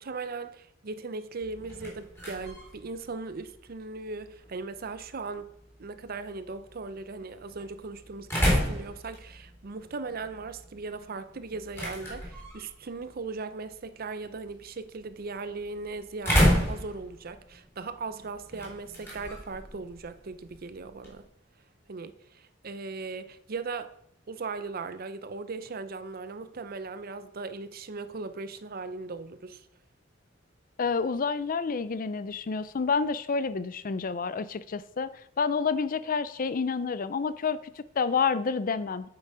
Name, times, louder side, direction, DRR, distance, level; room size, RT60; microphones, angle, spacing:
voice 1, 0.0-5.5 5.8-21.3 21.9-23.9 24.3-29.6, right 4 dB, 50° right, 0.6 m, -38 dB
sound 1, 1.4-21.3, equal, 15° left, 3.4 m, -33 dB
voice 2, 30.8-35.1 35.4-39.1, left 5 dB, 45° left, 0.5 m, -29 dB
8.7 x 6.7 x 4.8 m
head